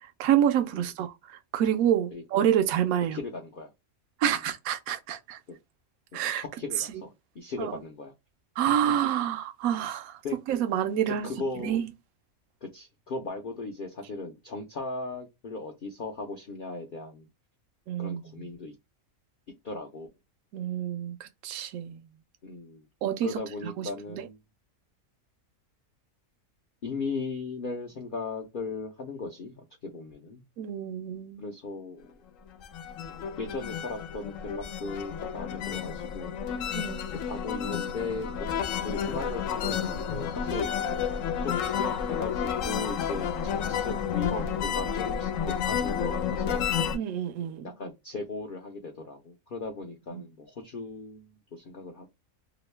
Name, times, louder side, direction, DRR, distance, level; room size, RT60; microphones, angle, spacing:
voice 1, 0.2-3.2 4.2-5.4 6.1-6.4 7.6-7.8 8.6-10.2 10.5-11.3 11.6-11.9 17.9-18.2 20.5-22.0 23.0-23.4 23.8-23.9 30.6-31.5 36.7-37.1 46.9-47.7 50.1-50.2, right 10 dB, 75° right, 1.0 m, -28 dB
voice 2, 3.1-3.7 5.5-5.6 6.1-6.2 6.6-8.1 10.2-10.4 11.1-11.9 12.6-17.3 18.0-18.7 19.6-20.1 22.4-22.9 23.2-24.4 26.8-30.4 31.4-32.1 33.4-36.4 37.2-38.3 38.8-40.7 41.4-46.7 47.6-52.1, left 3 dB, 55° left, 0.6 m, -37 dB
sound 1, 32.5-47.0, left 7 dB, 70° left, 0.9 m, -31 dB
3.0 x 2.6 x 3.2 m
omnidirectional pair, 1.6 m